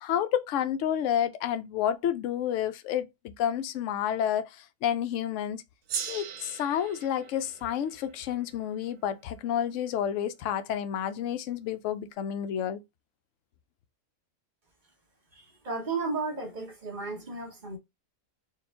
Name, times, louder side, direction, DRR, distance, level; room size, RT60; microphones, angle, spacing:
voice 1, 0.0-3.1 3.4-5.6 6.1-12.8, left 9 dB, 70° left, 0.8 m, -30 dB
Gong, 5.9-10.6, right 7 dB, 85° right, 1.2 m, -41 dB
voice 2, 15.3-17.8, right 3 dB, 35° right, 1.0 m, -34 dB
4.7 x 2.5 x 3.4 m
omnidirectional pair, 1.5 m